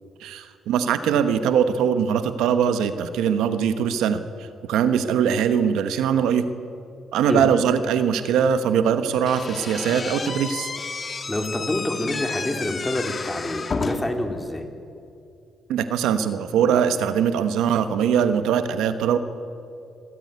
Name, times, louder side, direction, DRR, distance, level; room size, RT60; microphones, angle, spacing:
voice 1, 0.2-6.5 7.1-10.7 15.7-19.2, right 8 dB, 90° right, 10 dB, 1.2 m, -22 dB
Slam / Squeak, 9.3-14.2, left 4 dB, 35° left, 1.8 m, -31 dB
voice 2, 11.3-14.7, left 1 dB, 10° left, 4 dB, 3.1 m, -27 dB
26.5 x 14.0 x 9.6 m, 2.6 s
cardioid pair, 90°, 0 cm